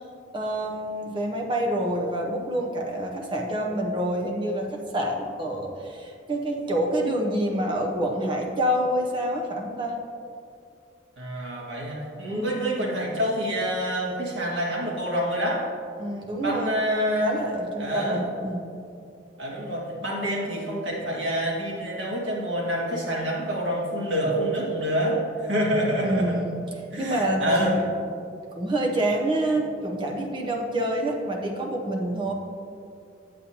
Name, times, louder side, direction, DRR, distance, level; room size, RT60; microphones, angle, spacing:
voice 1, 0.3-10.0 12.3-12.8 16.0-16.8 17.2-18.7 26.0-26.6 27.0-27.8 28.5-32.3, right 1 dB, 25° right, 0 dB, 0.7 m, -27 dB
voice 2, 11.2-15.7 16.4-17.4 17.8-18.3 19.4-26.4 26.9-27.8 29.4-29.5, equal, 70° right, -4 dB, 1.7 m, -27 dB
8.4 x 8.1 x 2.8 m, 2.5 s
head